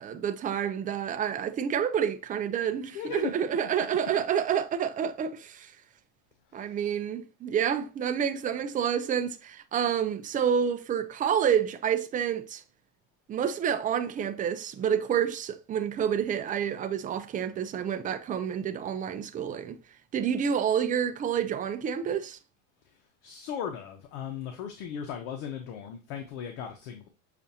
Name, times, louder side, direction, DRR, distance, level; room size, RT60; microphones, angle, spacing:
voice 1, 0.0-5.7 6.5-12.6 13.3-19.8 20.1-22.4, right 8 dB, 20° right, 0.3 m, -28 dB
voice 2, 2.9-3.3 6.5-6.8 22.8-27.1, left 8 dB, 70° left, 0.9 m, -37 dB
6.7 x 2.5 x 2.7 m
supercardioid pair, 110°, 42 cm